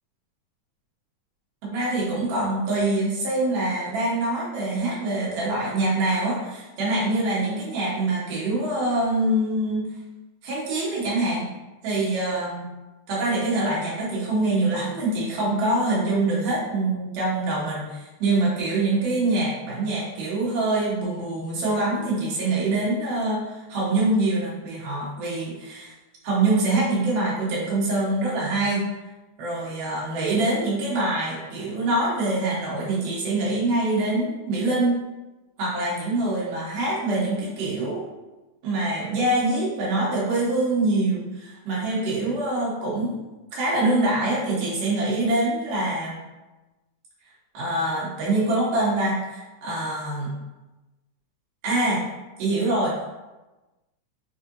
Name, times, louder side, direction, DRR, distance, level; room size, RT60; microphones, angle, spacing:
voice 1, 1.6-9.8 10.4-11.5 11.8-12.6 13.1-25.9 26.2-28.9 29.4-35.0 35.6-38.0 38.6-43.1 43.5-46.2 47.5-50.3 51.6-52.0 52.4-53.0, right 2 dB, 85° right, -7 dB, 2.8 m, -24 dB
5.7 x 2.6 x 2.7 m, 1.1 s
omnidirectional pair, 3.6 m